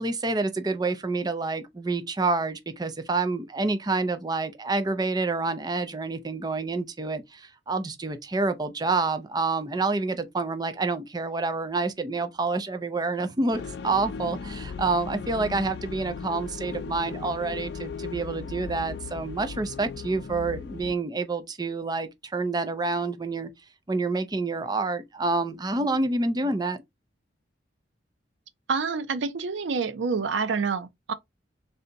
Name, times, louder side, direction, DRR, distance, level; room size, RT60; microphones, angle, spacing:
voice 1, 0.0-23.5 23.9-26.8, right 3 dB, 20° right, 0.5 m, -28 dB
sound 1, 13.5-21.0, left 5 dB, 60° left, 0.4 m, -37 dB
voice 2, 28.7-31.1, right 5 dB, 80° right, 0.5 m, -27 dB
3.3 x 2.7 x 3.8 m
head